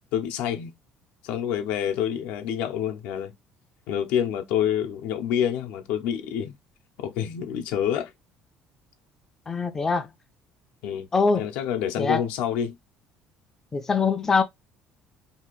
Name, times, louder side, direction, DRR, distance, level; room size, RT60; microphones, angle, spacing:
voice 1, 0.1-0.7 1.2-3.3 3.9-6.5 7.0-8.1 10.8-11.1 11.3-12.7, left 9 dB, 85° left, 0.6 m, -27 dB
voice 2, 9.5-10.1 11.1-11.5 12.0-12.2 13.7-14.4, left 4 dB, 15° left, 0.3 m, -23 dB
2.7 x 2.5 x 3.0 m
cardioid pair, 155°, 2 cm